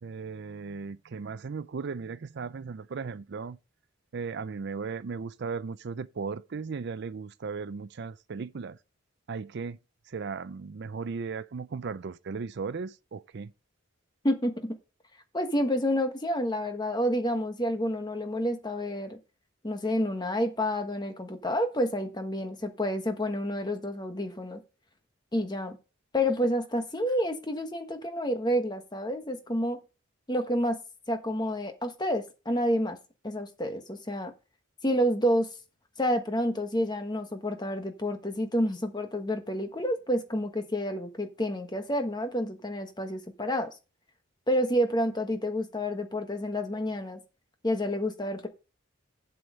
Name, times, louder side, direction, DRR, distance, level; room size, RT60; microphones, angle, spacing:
voice 1, 0.0-3.6 4.1-8.8 9.3-9.8 10.1-13.5, right 5 dB, 55° right, 0.4 m, -36 dB
voice 2, 14.2-14.8 15.3-19.2 19.6-24.6 25.3-25.8 26.1-29.8 30.3-30.8 31.1-33.0 33.2-34.3 34.8-35.5 36.0-43.7 44.5-47.2 47.6-48.5, equal, 20° left, 1.2 m, -29 dB
7.8 x 7.1 x 5.1 m
head